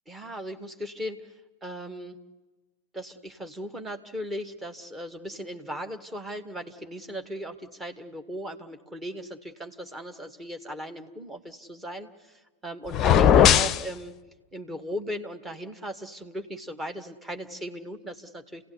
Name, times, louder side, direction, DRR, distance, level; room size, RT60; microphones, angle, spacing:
voice 1, 0.1-1.3 1.6-2.2 2.9-14.2 14.5-18.7, equal, 15° right, 7 dB, 2.2 m, -37 dB
sound 1, 12.9-13.8, left 9 dB, 30° left, 0.7 m, -18 dB
29.0 x 17.5 x 9.8 m, 1.2 s
figure-of-eight pair, 90°, 0 cm